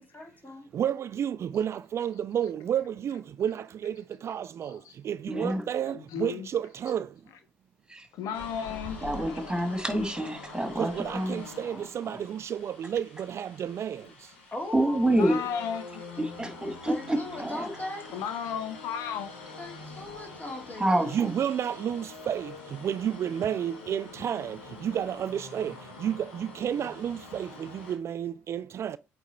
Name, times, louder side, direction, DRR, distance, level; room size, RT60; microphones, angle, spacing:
voice 1, 0.0-0.7 8.2-9.1 14.5-15.4 16.9-18.2 19.6-21.1, left 1 dB, 25° left, 2.9 m, -40 dB
voice 2, 0.7-7.2 10.8-14.1 21.1-29.0, right 9 dB, 50° right, 0.3 m, -31 dB
voice 3, 5.3-5.6 7.9-8.1 9.0-11.4 11.7-12.2 14.7-15.4 16.2-17.7 20.8-21.4, right 1 dB, 10° right, 2.2 m, -28 dB
voice 4, 5.9-6.5 8.2-9.3 15.1-16.0 18.1-19.3, left 7 dB, 65° left, 0.8 m, -34 dB
sound 1, 8.3-28.0, left 4 dB, 85° left, 1.6 m, -45 dB
8.3 x 3.4 x 4.4 m
hypercardioid pair, 45°, 6 cm